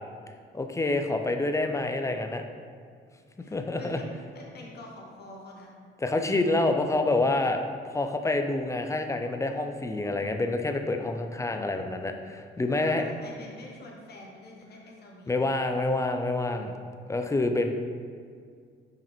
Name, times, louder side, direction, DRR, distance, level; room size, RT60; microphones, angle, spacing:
voice 1, 0.5-2.4 3.5-4.0 6.0-7.6 7.8-13.1 15.3-16.7 17.1-17.7, left 2 dB, 15° left, 5 dB, 0.5 m, -27 dB
voice 2, 3.3-4.1 4.3-5.7 12.8-15.4, left 2 dB, 55° left, -1 dB, 1.2 m, -46 dB
5.4 x 5.1 x 3.5 m, 2.2 s
cardioid pair, 90°, 20 cm